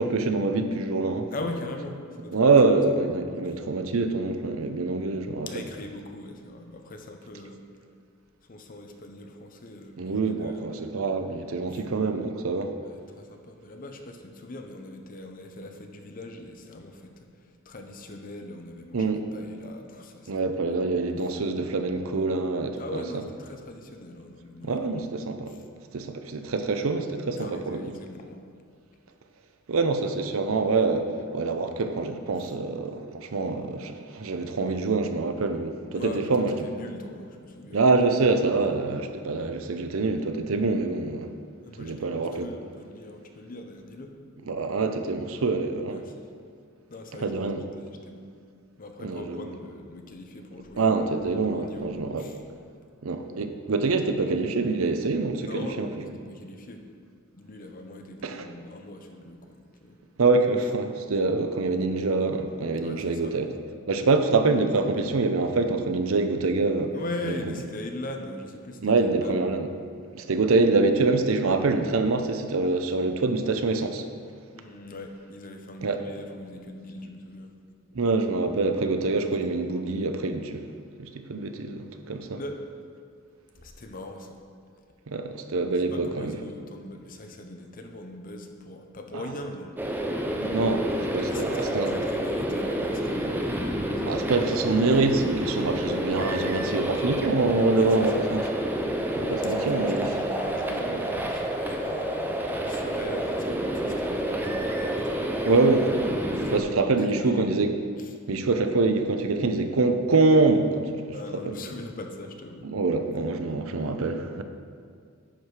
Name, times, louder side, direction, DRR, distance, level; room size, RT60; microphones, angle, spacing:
voice 1, 0.0-1.3 2.3-5.6 10.0-12.7 18.9-19.2 20.3-23.0 24.6-25.5 25.9-27.8 29.7-36.5 37.7-41.3 41.8-42.5 44.5-46.0 47.2-47.6 49.0-49.5 50.8-52.3 53.0-55.9 58.2-58.5 60.2-63.5 63.9-66.9 67.3-67.4 68.8-69.7 70.1-74.1 75.8-76.0 77.9-80.6 81.0-82.4 85.1-86.3 89.1-89.2 90.4-91.9 94.1-98.5 99.2-100.1 105.4-106.1 106.5-107.7 108.3-110.9 111.3-111.6 112.6-114.4, right 3 dB, 85° right, 7 dB, 0.6 m, -25 dB
voice 2, 1.3-2.5 3.0-3.1 3.4-3.6 5.4-7.9 8.4-10.7 11.7-11.8 12.9-20.8 22.8-24.9 25.5-25.6 27.4-28.4 32.4-32.5 35.9-37.8 41.6-44.1 45.9-46.3 46.9-47.5 47.8-48.3 48.8-51.0 51.4-52.4 52.8-52.9 55.4-56.8 57.3-60.0 62.8-63.4 66.9-69.8 74.5-77.5 82.3-82.6 83.5-84.4 85.9-89.7 91.3-94.2 97.7-98.3 99.4-105.4 106.3-107.6 108.0-108.1 111.1-112.7, left 2 dB, 45° left, 4 dB, 0.7 m, -40 dB
sound 1, 89.8-106.6, right 1 dB, 10° right, 0.6 m, -29 dB
10.5 x 4.7 x 4.9 m, 2.2 s
head